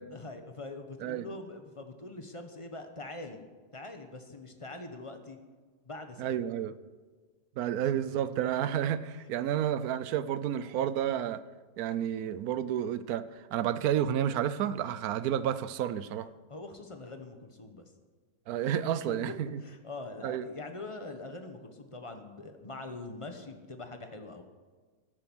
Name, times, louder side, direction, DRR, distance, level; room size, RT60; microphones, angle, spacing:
voice 1, 0.1-3.4 3.7-5.4 5.8-6.4 16.5-17.9 19.3-19.4 19.6-24.4, left 2 dB, 20° left, 6 dB, 1.0 m, -43 dB
voice 2, 6.2-6.8 7.6-11.4 11.8-16.3 18.5-19.6 20.2-20.5, right 10 dB, 70° right, 14 dB, 1.1 m, -31 dB
14.5 x 9.2 x 6.1 m, 1.4 s
omnidirectional pair, 1.8 m